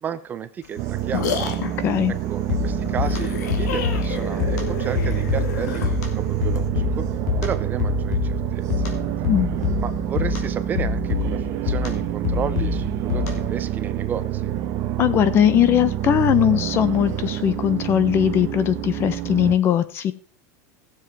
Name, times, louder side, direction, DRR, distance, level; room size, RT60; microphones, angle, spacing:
voice 1, 0.0-1.3 2.3-7.1 7.4-8.9 9.8-14.5, right 8 dB, 20° right, 12 dB, 0.8 m, -32 dB
sound 1, 0.6-6.7, left 7 dB, 90° left, 2.2 m, -31 dB
sound 2, 0.8-19.6, right 12 dB, 40° right, 1.2 m, -27 dB
voice 2, 1.6-2.1 9.3-9.5 15.0-20.1, left 10 dB, 25° left, 15 dB, 0.7 m, -20 dB
sound 3, 2.5-13.6, left 6 dB, 75° left, 3.3 m, -27 dB
17.0 x 7.3 x 4.6 m, 0.41 s
supercardioid pair, 160°, 9 cm